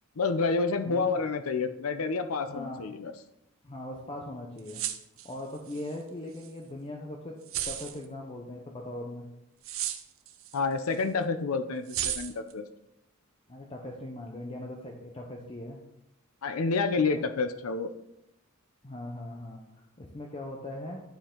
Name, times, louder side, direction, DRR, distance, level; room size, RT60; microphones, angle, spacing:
voice 1, 0.2-3.1 10.5-12.7 16.4-17.9, left 4 dB, 80° left, 9 dB, 0.6 m, -29 dB
voice 2, 0.9-1.2 2.5-2.8 3.6-4.8 5.2-7.3 7.6-9.3 13.5-15.8 17.1-17.2 18.8-21.0, left 1 dB, 25° left, 0 dB, 0.8 m, -40 dB
sound 1, 4.6-6.0 6.4-6.5 7.4-8.0 9.6-10.6 10.9-11.0 11.9-12.5, right 11 dB, 65° right, 0.7 m, -34 dB
11.5 x 4.5 x 3.8 m, 0.85 s
head